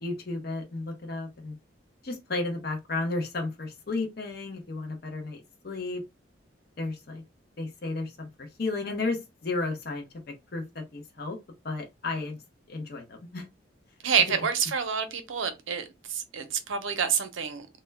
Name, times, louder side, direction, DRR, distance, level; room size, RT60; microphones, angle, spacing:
voice 1, 0.0-1.6 2.0-6.0 6.8-7.2 7.6-10.1 10.5-11.4 11.6-12.4 12.7-13.5, left 3 dB, 50° left, 0.6 m, -33 dB
voice 2, 14.0-17.7, right 7 dB, 85° right, 0.5 m, -28 dB
2.1 x 2.1 x 3.2 m
head